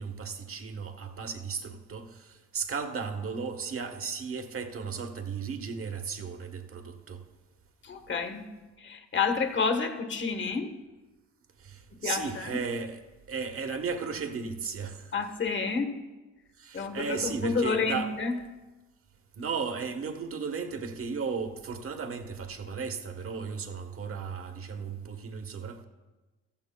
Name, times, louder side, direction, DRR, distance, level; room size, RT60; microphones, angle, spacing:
voice 1, 0.0-7.2 11.6-13.0 13.3-15.1 16.6-18.1 19.4-25.8, right 5 dB, 45° right, 1.3 m, -35 dB
voice 2, 7.8-8.5 8.8-10.7 12.0-12.6 15.1-16.0 16.7-18.4, left 5 dB, 40° left, 1.3 m, -29 dB
14.5 x 14.5 x 2.2 m
cardioid pair, 90°, 30 cm